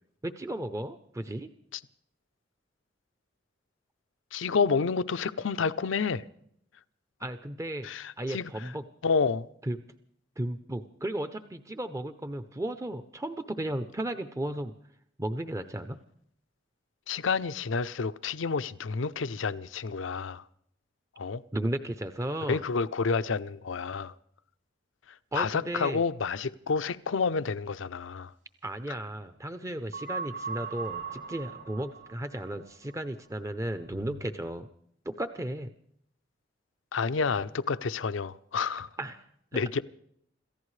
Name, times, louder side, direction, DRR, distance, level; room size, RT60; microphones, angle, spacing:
voice 1, 0.2-1.5 7.2-8.8 9.6-9.8 10.4-14.7 15.2-16.0 21.5-22.6 25.3-26.0 28.6-34.7 35.0-35.7 39.0-39.3 39.5-39.7, right 1 dB, 15° right, 0.6 m, -35 dB
voice 2, 4.3-6.2 7.8-8.4 9.0-9.5 17.1-20.4 21.2-21.4 22.5-24.1 25.3-28.3 36.9-38.9 39.5-39.8, left 5 dB, 80° left, 0.6 m, -29 dB
sound 1, 29.9-32.6 33.9-34.2, right 5 dB, 70° right, 6.4 m, -39 dB
27.5 x 14.5 x 3.2 m
head